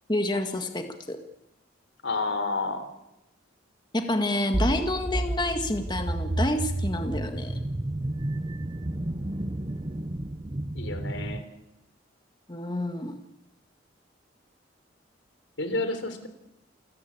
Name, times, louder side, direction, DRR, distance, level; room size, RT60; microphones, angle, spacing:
voice 1, 0.1-1.2 3.9-7.5 12.5-13.2, left 1 dB, 25° left, 5 dB, 1.8 m, -28 dB
voice 2, 2.0-2.9 10.7-11.4 15.6-16.3, left 3 dB, 85° left, 9 dB, 3.8 m, -30 dB
sound 1, 4.5-11.4, right 1 dB, 30° right, 0.8 m, -31 dB
28.5 x 15.5 x 8.6 m, 0.90 s
head